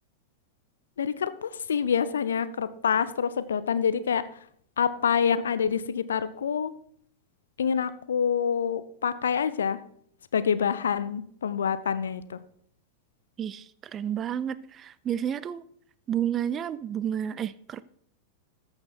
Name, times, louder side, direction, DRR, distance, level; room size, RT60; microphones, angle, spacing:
voice 1, 1.0-4.3 4.8-6.7 7.6-9.8 10.3-12.4, left 7 dB, 65° left, 0.6 m, -26 dB
voice 2, 13.4-15.6 16.1-17.8, right 9 dB, 25° right, 0.4 m, -31 dB
14.0 x 6.7 x 4.4 m
figure-of-eight pair, 90°, 0 cm